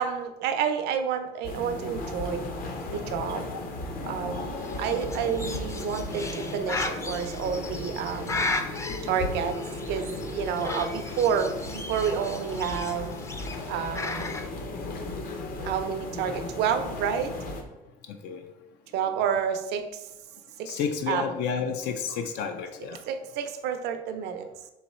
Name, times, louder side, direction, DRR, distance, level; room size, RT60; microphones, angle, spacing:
voice 1, 0.0-3.5 4.1-4.5 4.8-8.4 9.0-9.6 9.9-13.2 13.7-14.3 15.6-17.3 18.9-20.1 20.6-20.8 21.1-21.4 23.1-24.5, right 7 dB, 85° right, 7 dB, 0.5 m, -29 dB
sound 1, 1.4-17.6, left 2 dB, 60° left, 0.8 m, -36 dB
Bird, 4.6-14.5, left 3 dB, 15° left, 0.4 m, -36 dB
voice 2, 18.1-18.4 20.7-23.0, left 6 dB, 80° left, 6 dB, 0.4 m, -31 dB
3.9 x 3.0 x 4.3 m, 0.97 s
cardioid pair, 110°, 17 cm